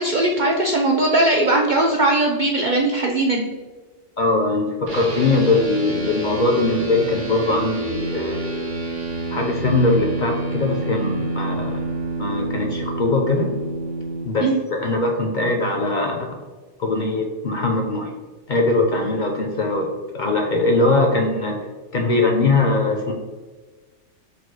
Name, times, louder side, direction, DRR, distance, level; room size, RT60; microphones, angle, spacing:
voice 1, 0.0-3.5 14.4-14.6, right 2 dB, 65° right, 0 dB, 0.4 m, -19 dB
voice 2, 4.2-8.5 9.3-11.8 12.2-13.5 14.2-16.4 16.8-18.1 18.5-19.9 20.1-21.6 21.9-23.1, left 2 dB, 55° left, 1 dB, 0.6 m, -21 dB
sound 1, 4.9-14.2, right 3 dB, 45° right, 0.9 m, -28 dB
4.1 x 2.3 x 4.6 m, 1.3 s
omnidirectional pair, 1.3 m